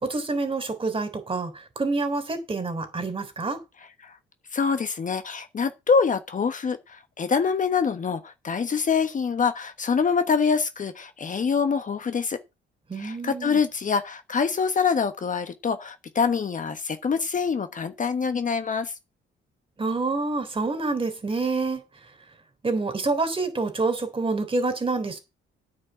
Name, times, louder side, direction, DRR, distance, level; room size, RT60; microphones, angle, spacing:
voice 1, 0.0-3.6 12.9-13.6 19.8-21.8 22.6-25.2, right 3 dB, 25° right, 3.6 m, -27 dB
voice 2, 4.5-12.4 13.0-18.9, left 5 dB, 40° left, 1.2 m, -25 dB
9.6 x 5.3 x 8.2 m
cardioid pair, 90°, 20 cm